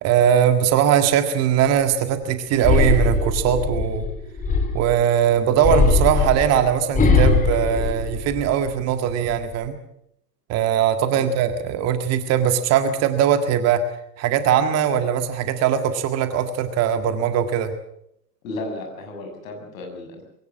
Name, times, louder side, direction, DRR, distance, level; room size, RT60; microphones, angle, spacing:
voice 1, 0.0-4.1 4.7-9.7 10.5-13.8 14.2-17.7, right 9 dB, 30° right, 9 dB, 1.9 m, -20 dB
sound 1, 2.6-5.0 5.6-8.7 9.1-9.7, left 3 dB, 15° left, 3.3 m, -20 dB
voice 2, 18.4-20.2, left 2 dB, 55° left, 3 dB, 7.1 m, -34 dB
22.5 x 17.5 x 7.5 m, 0.74 s
figure-of-eight pair, 95°, 49 cm